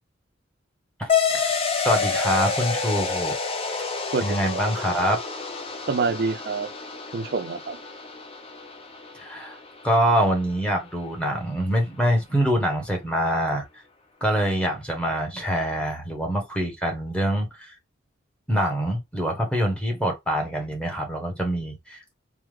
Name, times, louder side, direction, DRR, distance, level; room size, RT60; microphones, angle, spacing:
voice 1, 1.0-3.3 3.8-3.9 4.2-5.2 9.1-9.6 9.8-13.6 14.2-17.7 18.5-22.1, equal, 5° left, 1.0 m, -25 dB
sound 1, 1.1-10.1, left 5 dB, 30° left, 0.5 m, -29 dB
voice 2, 4.1-4.6 5.9-6.7 7.1-7.8, right 4 dB, 50° right, 0.4 m, -27 dB
3.4 x 2.0 x 3.1 m
head